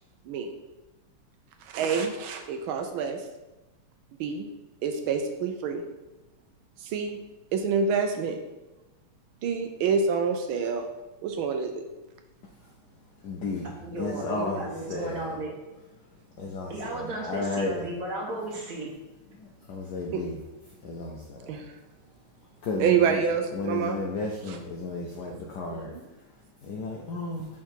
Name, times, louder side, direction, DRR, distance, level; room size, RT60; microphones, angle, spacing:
voice 1, 1.7-3.2 4.2-4.5 4.8-5.8 6.8-7.2 7.5-8.4 9.4-10.9 11.2-11.8 20.1-20.2 21.5-21.7 22.8-24.0 24.4-24.6 25.0-25.1 25.7-26.1, right 6 dB, 75° right, 5 dB, 1.3 m, -27 dB
voice 2, 13.2-13.7 14.0-15.3 16.4-17.8 19.7-20.4 20.8-21.5 22.6-23.2 23.5-25.9 26.6-27.5, left 3 dB, 75° left, 0 dB, 0.9 m, -33 dB
voice 3, 13.8-15.5 16.7-18.9, right 1 dB, 50° right, -2 dB, 1.3 m, -34 dB
5.9 x 3.7 x 4.4 m, 1.0 s
omnidirectional pair, 2.4 m